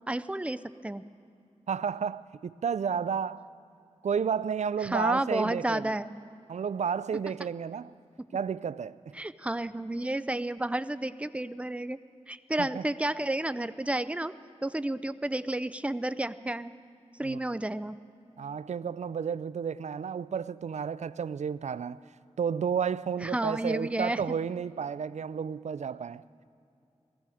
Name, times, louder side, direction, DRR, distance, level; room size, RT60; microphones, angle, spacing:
voice 1, 0.1-1.0 4.8-6.1 9.1-12.0 12.3-14.3 14.6-16.7 17.2-18.0 23.2-24.2, right 1 dB, 10° right, 0.5 m, -31 dB
voice 2, 1.7-3.4 4.0-5.9 6.5-7.9 8.3-9.2 12.6-12.8 17.2-17.4 18.4-22.0 22.4-26.2, right 7 dB, 75° right, 0.4 m, -32 dB
19.0 x 14.5 x 4.9 m
cardioid pair, 50°, 12 cm